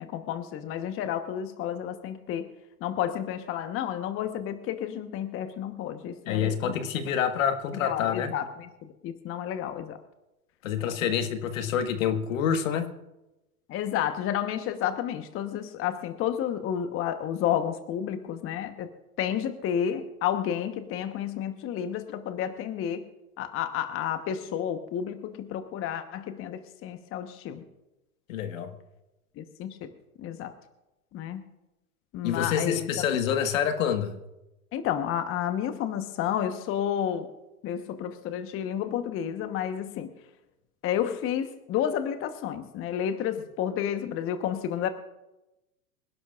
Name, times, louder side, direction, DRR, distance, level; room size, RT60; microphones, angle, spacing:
voice 1, 0.0-2.5 2.8-7.2 7.7-10.0 11.0-11.1 13.7-18.9 19.2-23.0 23.4-27.6 29.4-29.9 30.2-30.5 31.1-31.4 32.1-32.9 34.7-37.3 37.6-40.1 40.8-44.9, left 9 dB, 30° left, 9 dB, 1.0 m, -31 dB
voice 2, 6.3-8.3 10.6-12.9 28.3-28.7 32.2-34.1, left 8 dB, 60° left, 8 dB, 1.5 m, -27 dB
25.5 x 11.5 x 2.4 m, 0.97 s
hypercardioid pair, 105°, 44 cm